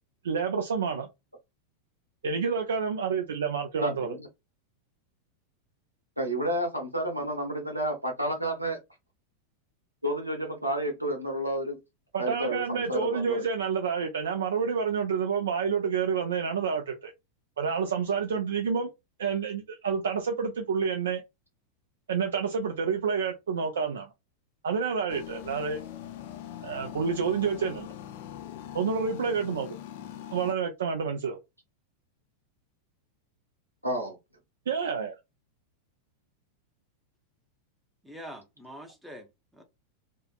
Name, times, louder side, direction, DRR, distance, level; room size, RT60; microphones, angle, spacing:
voice 1, 0.2-1.1 2.2-4.1 12.1-17.1 17.6-18.9 19.2-21.2 22.1-24.1 24.6-25.8 26.6-27.9 28.7-29.7 30.3-31.4 34.7-35.1, right 6 dB, 65° right, 0.3 m, -29 dB
voice 2, 3.8-4.2 6.2-8.8 10.0-11.8 12.2-13.5 33.8-34.1, right 1 dB, 90° right, 0.8 m, -30 dB
sound 1, 25.1-30.5, left 11 dB, 50° left, 0.3 m, -42 dB
voice 3, 38.0-39.6, equal, ahead, 0.7 m, -45 dB
2.7 x 2.4 x 2.2 m
figure-of-eight pair, 90°, 0 cm